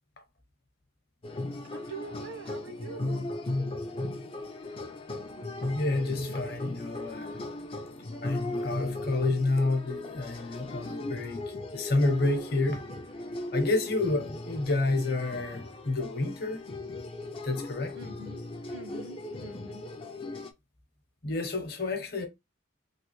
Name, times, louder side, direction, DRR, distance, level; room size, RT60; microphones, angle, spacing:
sound 1, 1.2-20.5, left 2 dB, 25° left, 0.4 m, -37 dB
voice 1, 1.7-3.3 17.9-18.4 18.7-19.8, right 3 dB, 80° right, 1.3 m, -44 dB
voice 2, 5.8-7.5 8.2-12.8 13.5-16.6 17.4-17.9 21.2-22.3, left 2 dB, 50° left, 0.8 m, -29 dB
3.2 x 2.4 x 3.0 m
head